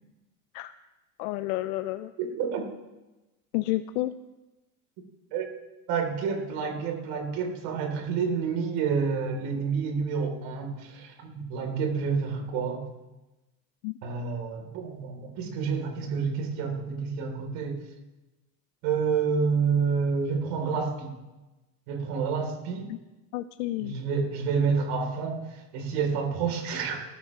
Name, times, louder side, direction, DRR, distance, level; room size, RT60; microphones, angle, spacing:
voice 1, 1.2-2.1 3.5-4.1 13.8-13.9 22.9-23.0 23.3-24.0, left 17 dB, 85° left, 11 dB, 0.7 m, -30 dB
voice 2, 2.2-2.6 5.3-5.5 5.9-12.9 14.0-17.8 18.8-21.1 21.9-22.9 23.8-27.0, right 5 dB, 70° right, 3 dB, 3.8 m, -29 dB
18.0 x 13.5 x 3.3 m, 1.1 s
supercardioid pair, 100°, 43 cm